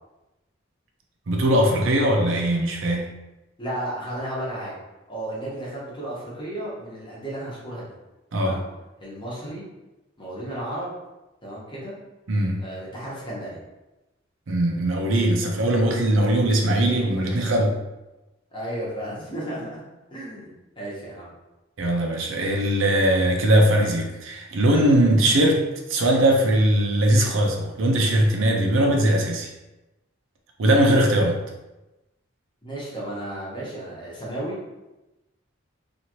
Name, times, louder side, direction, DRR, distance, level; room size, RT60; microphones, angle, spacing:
voice 1, 1.3-3.1 8.3-8.6 12.3-12.7 14.5-17.7 21.8-29.5 30.6-31.4, right 1 dB, 80° right, 1 dB, 0.5 m, -20 dB
voice 2, 3.6-4.8 5.1-7.9 8.3-8.6 9.0-9.6 10.2-10.9 11.4-11.9 12.6-13.6 18.5-19.8 20.1-21.3 32.6-34.6, right 1 dB, 25° left, -6 dB, 1.0 m, -33 dB
2.9 x 2.5 x 2.9 m, 1.0 s
head